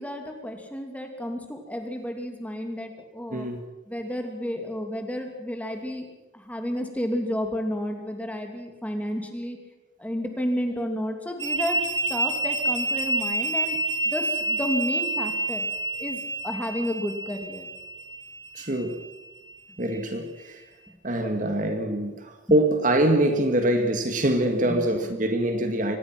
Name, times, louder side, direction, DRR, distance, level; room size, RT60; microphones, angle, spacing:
voice 1, 0.0-3.5 3.9-6.1 6.3-9.6 10.0-11.8 12.1-13.8 14.0-15.6 16.0-17.7 24.7-24.8, equal, 10° left, 2.7 m, -31 dB
voice 2, 3.3-3.6 18.5-19.0 19.8-20.6 21.0-26.0, right 1 dB, 40° right, 2.0 m, -24 dB
sound 1, 11.4-19.0, right 2 dB, 80° right, 3.3 m, -28 dB
24.0 x 20.0 x 6.1 m
head